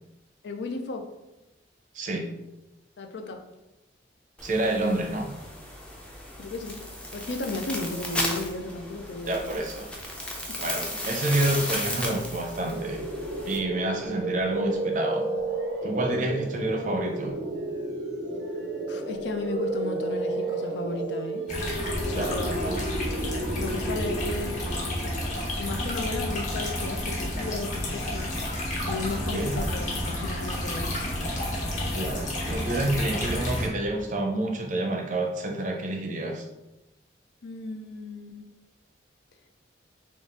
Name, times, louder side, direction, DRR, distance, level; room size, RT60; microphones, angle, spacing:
voice 1, 0.4-1.1 3.0-3.4 6.4-6.8 7.1-9.5 10.5-10.6 18.9-21.5 22.0-22.7 23.6-24.7 25.6-28.3 28.9-30.9 37.4-38.5, left 3 dB, 65° left, 5 dB, 0.4 m, -34 dB
voice 2, 1.9-2.3 4.4-5.3 9.3-9.9 10.6-13.0 13.4-15.3 15.8-17.4 22.1-22.8 29.3-29.5 31.9-36.5, right 1 dB, 40° right, 3 dB, 0.6 m, -28 dB
sound 1, 4.4-13.6, left 1 dB, 5° left, 0.5 m, -35 dB
sound 2, 12.6-25.4, right 2 dB, 90° right, 0.7 m, -32 dB
sound 3, 21.5-33.7, left 1 dB, 40° left, 0.9 m, -30 dB
3.8 x 2.4 x 3.7 m, 0.98 s
head